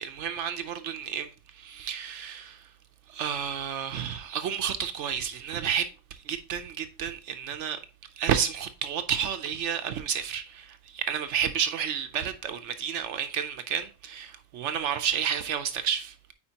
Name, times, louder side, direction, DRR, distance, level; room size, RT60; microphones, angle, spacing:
voice 1, 0.0-2.6 3.1-5.9 6.3-7.8 8.2-16.3, right 8 dB, 75° right, 0.9 m, -31 dB
8.7 x 4.4 x 2.8 m
omnidirectional pair, 1.3 m